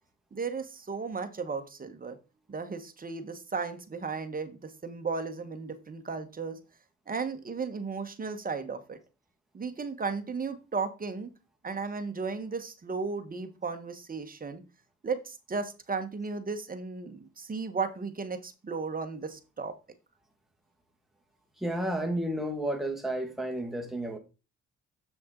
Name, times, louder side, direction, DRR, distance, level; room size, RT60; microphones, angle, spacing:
voice 1, 0.3-2.2 2.5-6.6 7.1-9.0 9.5-11.3 11.6-14.6 15.0-19.7, right 4 dB, 30° right, 1.2 m, -35 dB
voice 2, 21.6-24.2, right 1 dB, ahead, 1.9 m, -31 dB
7.5 x 5.9 x 3.8 m
cardioid pair, 90°, 30 cm